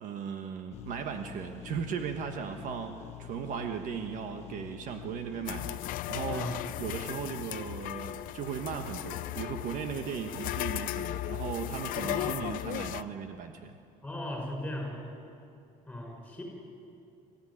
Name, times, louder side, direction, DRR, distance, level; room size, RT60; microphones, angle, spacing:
voice 1, 0.0-5.8 6.1-13.8, right 7 dB, 55° right, 6 dB, 1.3 m, -37 dB
sound 1, 0.7-7.5, left 12 dB, 45° left, 1.0 m, -47 dB
sound 2, 5.4-13.0, left 15 dB, 60° left, 0.6 m, -36 dB
voice 2, 6.3-6.6 12.0-12.4 14.0-15.1 15.9-16.4, left 1 dB, 5° left, 0 dB, 5.8 m, -37 dB
25.5 x 14.5 x 10.0 m, 2.6 s
cardioid pair, 155°, 16 cm